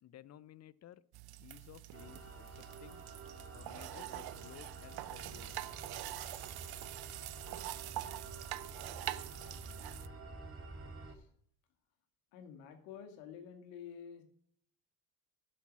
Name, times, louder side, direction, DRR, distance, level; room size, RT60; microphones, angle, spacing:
voice 1, 0.0-1.0 1.4-3.0 3.5-5.9, left 11 dB, 35° left, 19 dB, 0.6 m, -56 dB
sound 1, 1.1-10.1, right 15 dB, 55° right, 0.7 m, -45 dB
sound 2, 1.9-11.2, right 3 dB, 30° right, 2.2 m, -50 dB
Percussion / Wind chime, 5.3-10.0, right 12 dB, 70° right, 1.4 m, -63 dB
voice 2, 12.3-14.2, left 8 dB, 80° left, 6 dB, 2.1 m, -50 dB
11.5 x 6.3 x 6.1 m, 0.64 s
hypercardioid pair, 70°, 46 cm